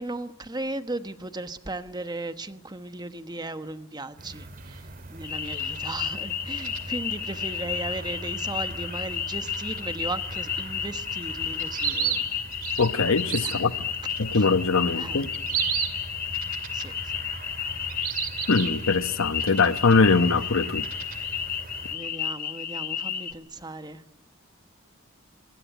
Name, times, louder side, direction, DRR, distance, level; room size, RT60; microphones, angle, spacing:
voice 1, 0.0-12.3 13.4-13.6 14.3-14.5 14.9-15.2 16.7-17.1 21.9-24.0, right 2 dB, 20° right, 1.1 m, -36 dB
sound 1, 4.2-22.0, right 6 dB, 45° right, 2.6 m, -36 dB
sound 2, 5.2-23.3, left 8 dB, 45° left, 1.3 m, -32 dB
voice 2, 12.8-13.7 14.2-15.3 18.5-20.8, left 4 dB, 75° left, 1.0 m, -22 dB
26.5 x 20.5 x 9.2 m
head